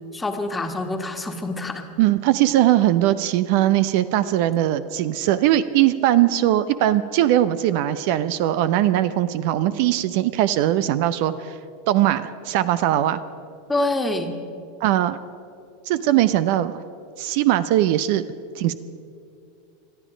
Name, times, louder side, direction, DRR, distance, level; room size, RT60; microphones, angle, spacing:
voice 1, 0.1-1.9 13.7-14.4, left 2 dB, 15° left, 5 dB, 1.6 m, -26 dB
voice 2, 2.0-11.6 11.9-13.2 14.8-15.2 15.9-16.8 17.2-18.2 18.6-18.7, right 13 dB, 60° right, 14 dB, 0.6 m, -20 dB
22.0 x 12.5 x 5.1 m, 2.5 s
hypercardioid pair, 95°, 0 cm